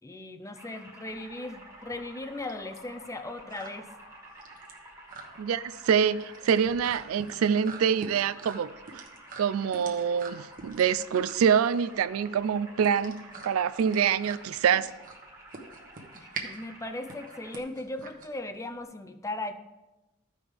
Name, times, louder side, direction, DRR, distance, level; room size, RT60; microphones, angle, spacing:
voice 1, 0.0-3.9 16.1-19.5, left 2 dB, 15° left, 0.5 m, -38 dB
sound 1, 0.5-17.6, right 1 dB, 15° right, 1.4 m, -50 dB
sound 2, 1.1-18.8, right 4 dB, 40° right, 1.0 m, -45 dB
voice 2, 5.4-9.0 9.4-14.9, right 7 dB, 75° right, 0.3 m, -26 dB
14.0 x 5.3 x 3.4 m
head